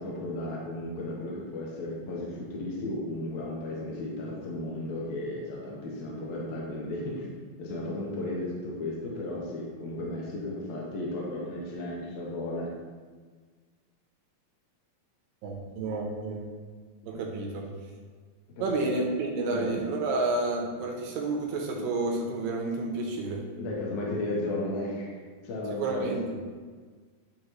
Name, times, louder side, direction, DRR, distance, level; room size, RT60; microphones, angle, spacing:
voice 1, 0.0-12.7 17.1-17.3 18.6-18.9 19.5-19.7 23.6-26.4, left 1 dB, 75° left, -4 dB, 1.6 m, -34 dB
voice 2, 15.4-16.4 17.1-17.7 18.6-23.4 25.8-26.4, right 2 dB, 80° right, 0 dB, 2.5 m, -30 dB
9.5 x 3.6 x 3.0 m, 1.5 s
omnidirectional pair, 4.2 m